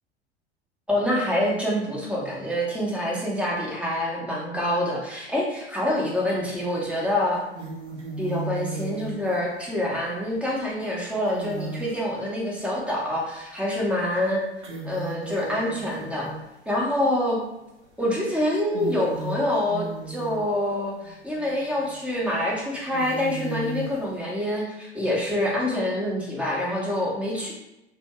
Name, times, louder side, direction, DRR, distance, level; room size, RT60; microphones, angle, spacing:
voice 1, 0.9-7.4 8.2-14.4 14.8-16.3 16.7-17.4 18.0-27.5, left 1 dB, 5° right, -4 dB, 0.8 m, -26 dB
sound 1, 6.1-6.6 7.1-12.9 13.5-13.6 14.0-17.0 17.8-18.1 18.5-24.3, right 2 dB, 85° right, 0.6 m, -37 dB
2.5 x 2.3 x 3.0 m, 0.90 s
figure-of-eight pair, 80°, 34 cm